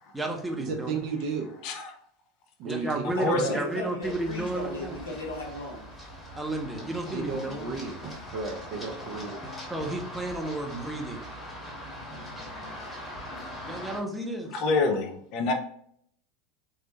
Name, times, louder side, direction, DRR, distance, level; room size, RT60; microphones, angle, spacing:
voice 1, 0.1-1.0 2.6-5.0 6.4-7.7 9.7-11.3 13.6-14.5, right 2 dB, 10° right, 1 dB, 0.6 m, -32 dB
voice 2, 0.7-1.5 2.6-2.9 3.2-3.6 7.1-9.4, right 5 dB, 50° right, 2 dB, 0.5 m, -33 dB
voice 3, 3.2-5.9 12.5-12.8, left 2 dB, 75° left, 0 dB, 0.8 m, -36 dB
Run, 4.0-14.0, left 1 dB, 15° left, 1.2 m, -41 dB
voice 4, 14.5-15.5, left 3 dB, 50° left, 4 dB, 0.4 m, -26 dB
3.0 x 2.0 x 2.7 m, 0.66 s
figure-of-eight pair, 80°, 0 cm